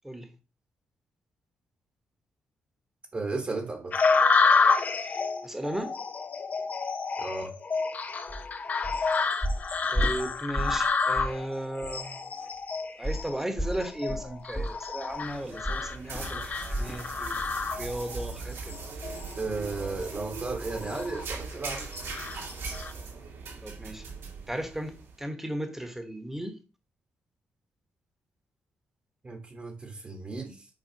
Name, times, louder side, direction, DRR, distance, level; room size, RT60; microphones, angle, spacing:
voice 1, 3.1-3.9 7.2-7.5 19.4-21.9 29.2-30.7, right 3 dB, 30° right, 1.2 m, -34 dB
sound 1, 3.9-18.2 18.7-19.3 19.8-20.0 20.6-21.2 21.7-22.9, left 4 dB, 40° left, 0.6 m, -29 dB
voice 2, 5.0-5.9 9.9-12.2 13.0-17.4 17.8-18.8 23.6-24.0 24.5-26.6, right 1 dB, 10° right, 1.2 m, -35 dB
sound 2, 8.3-8.5 8.8-9.1 9.4-10.9 11.1-11.4 11.8-11.9 13.0-17.0 17.3-17.6 17.9-18.0, equal, 10° left, 1.0 m, -33 dB
sound 3, 15.1-25.1, right 4 dB, 75° right, 2.1 m, -40 dB
7.6 x 4.6 x 2.8 m
cardioid pair, 105°, 4 cm